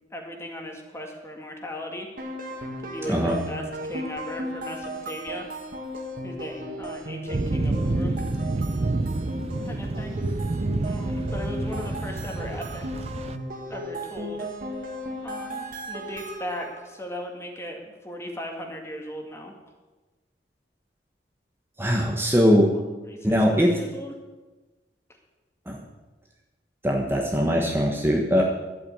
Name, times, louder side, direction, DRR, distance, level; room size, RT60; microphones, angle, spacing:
voice 1, 0.1-2.1 2.8-5.5 6.2-8.1 9.6-10.2 10.8-13.1 13.7-14.5 15.2-19.5 22.7-24.1, left 1 dB, 15° left, 2 dB, 2.0 m, -37 dB
sound 1, 2.2-16.9, equal, 55° right, 1.8 m, -35 dB
sound 2, 7.3-13.4, right 2 dB, 35° right, 0.4 m, -28 dB
voice 2, 21.8-22.7 23.2-23.8 25.7-25.8 26.8-28.4, equal, 15° right, 0 dB, 1.2 m, -21 dB
11.5 x 8.4 x 8.7 m, 1.2 s
head